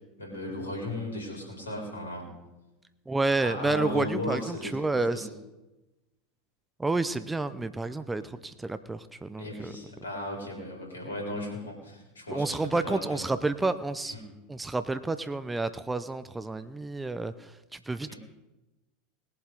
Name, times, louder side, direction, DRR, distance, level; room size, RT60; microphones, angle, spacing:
voice 1, 0.2-2.3 3.4-5.3 9.4-13.2 14.0-14.2 18.1-18.2, left 1 dB, 80° left, 1 dB, 3.8 m, -36 dB
voice 2, 3.1-5.3 6.8-9.7 12.3-14.1 14.5-17.3 17.7-18.1, right 3 dB, 10° right, 12 dB, 0.6 m, -30 dB
20.0 x 7.6 x 4.9 m, 1.0 s
figure-of-eight pair, 80°, 0 cm